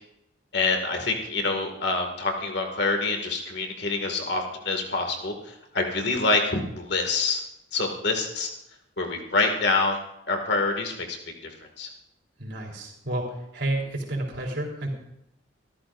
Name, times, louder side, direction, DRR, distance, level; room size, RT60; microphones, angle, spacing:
voice 1, 0.5-7.4 7.7-8.5 9.0-10.0 10.3-11.2 11.4-11.5 11.8-11.9, left 3 dB, 60° left, 3 dB, 2.1 m, -26 dB
voice 2, 12.4-13.2 13.5-14.9, right 1 dB, 65° right, 0 dB, 3.8 m, -30 dB
24.5 x 13.5 x 2.6 m, 0.82 s
head